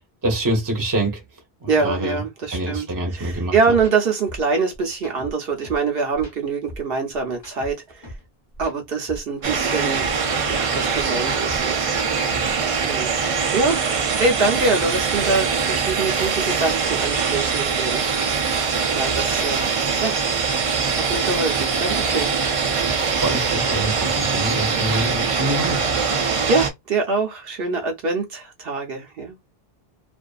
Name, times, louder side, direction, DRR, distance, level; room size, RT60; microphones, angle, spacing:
voice 1, 0.2-1.2 1.6-2.2 2.5-3.6 12.3-12.5 22.8-22.9 23.2-26.0, right 1 dB, 20° right, 0.7 m, -25 dB
voice 2, 1.7-2.9 3.1-8.1 8.6-10.1 10.5-11.9 12.8-13.1 13.5-18.0 18.9-19.7 20.0-20.2 21.1-22.3 26.2-29.3, right 4 dB, 65° right, 0.9 m, -24 dB
sound 1, 3.2-3.4 3.7-3.9 4.3-5.9 6.1-8.3 8.5-10.7 10.9-12.8, equal, 30° left, 0.9 m, -39 dB
sound 2, 9.4-26.7, right 5 dB, 45° right, 0.4 m, -22 dB
2.5 x 2.4 x 2.3 m
omnidirectional pair, 1.1 m